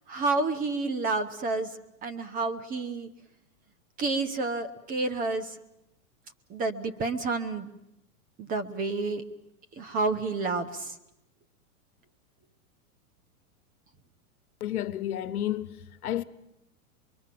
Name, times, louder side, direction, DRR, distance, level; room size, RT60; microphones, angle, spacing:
voice 1, 0.0-1.7 2.0-3.1 4.0-5.5 6.5-7.7 8.4-9.2 9.8-10.9, right 3 dB, 20° right, 1.0 m, -29 dB
voice 2, 14.6-16.2, left 12 dB, 80° left, 1.1 m, -31 dB
24.5 x 23.0 x 7.7 m
supercardioid pair, 150°, 44 cm